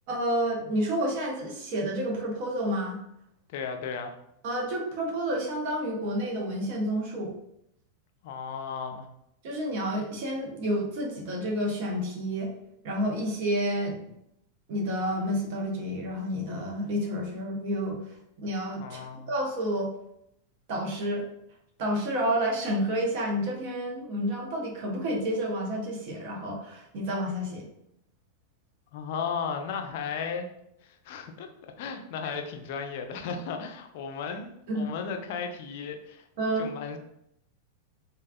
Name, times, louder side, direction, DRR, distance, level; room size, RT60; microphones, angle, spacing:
voice 1, 0.1-3.0 4.4-7.4 9.4-12.5 12.8-14.2 14.7-18.0 18.4-19.0 19.3-19.9 20.7-21.2 21.8-27.7 34.7-34.9 36.4-36.7, equal, 50° right, -1 dB, 0.8 m, -30 dB
voice 2, 3.5-4.2 8.2-9.1 18.8-19.3 28.9-30.5 30.8-31.5 31.8-36.2 36.6-37.0, left 6 dB, 50° left, 5 dB, 0.4 m, -35 dB
3.3 x 2.3 x 2.4 m, 0.78 s
figure-of-eight pair, 90°, 0 cm